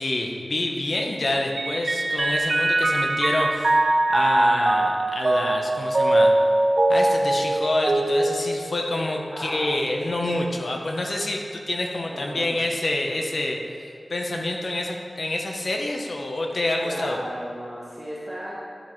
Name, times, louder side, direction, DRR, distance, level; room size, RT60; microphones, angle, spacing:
voice 1, 0.0-6.3 6.9-17.2, left 1 dB, 60° left, 1 dB, 0.9 m, -27 dB
Mallet percussion, 1.6-9.3, right 2 dB, 45° right, 0.4 m, -22 dB
voice 2, 9.3-10.4 12.0-12.6 16.8-18.6, equal, 5° left, -9 dB, 2.2 m, -35 dB
12.0 x 7.4 x 3.1 m, 2.3 s
wide cardioid pair, 85°, 0 cm